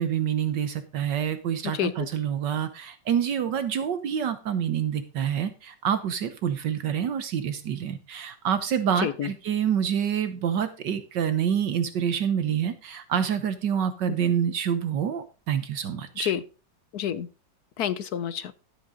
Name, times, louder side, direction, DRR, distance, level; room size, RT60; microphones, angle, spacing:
voice 1, 0.0-16.3, right 8 dB, 70° right, 11 dB, 1.6 m, -27 dB
voice 2, 1.7-2.1 9.0-9.3 16.2-16.4 16.9-17.3 17.8-18.6, left 9 dB, 65° left, 15 dB, 1.1 m, -28 dB
12.5 x 8.6 x 3.8 m, 0.34 s
omnidirectional pair, 2.0 m